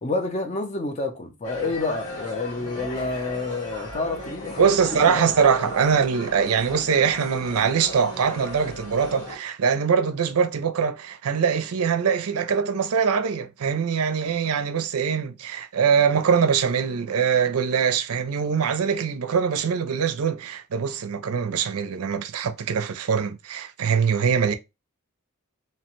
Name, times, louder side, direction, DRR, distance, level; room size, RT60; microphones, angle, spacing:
voice 1, 0.0-5.3, left 2 dB, 30° left, 0.5 m, -29 dB
sound 1, 1.4-9.4, left 2 dB, 90° left, 1.6 m, -37 dB
voice 2, 4.6-24.5, right 6 dB, 85° right, 0.5 m, -23 dB
2.8 x 2.1 x 3.0 m
head